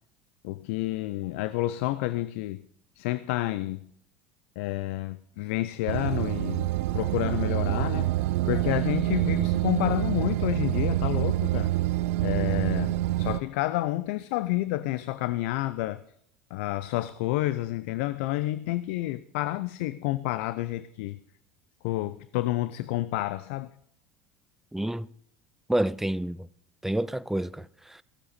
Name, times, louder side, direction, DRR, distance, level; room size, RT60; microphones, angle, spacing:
voice 1, 0.4-2.6 3.0-3.8 4.6-6.7 6.9-8.2 8.5-11.7 12.2-16.0 16.5-21.2 21.8-23.7, left 17 dB, 70° left, 0.5 m, -29 dB
sound 1, 5.9-13.4, right 16 dB, 75° right, 0.5 m, -26 dB
voice 2, 24.7-25.1 25.7-26.5 26.8-28.0, right 1 dB, 5° right, 0.5 m, -29 dB
16.0 x 12.5 x 4.1 m
hypercardioid pair, 80°, 7 cm